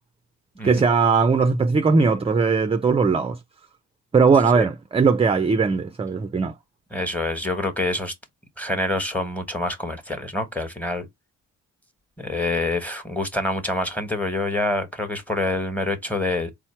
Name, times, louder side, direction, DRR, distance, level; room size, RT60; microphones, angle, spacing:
voice 1, 0.6-3.4 4.1-6.5, right 5 dB, 20° right, 0.5 m, -19 dB
voice 2, 6.9-8.1 8.6-11.1 12.2-16.5, left 2 dB, 5° left, 1.3 m, -26 dB
4.2 x 2.0 x 4.4 m
cardioid pair, 90°, 30 cm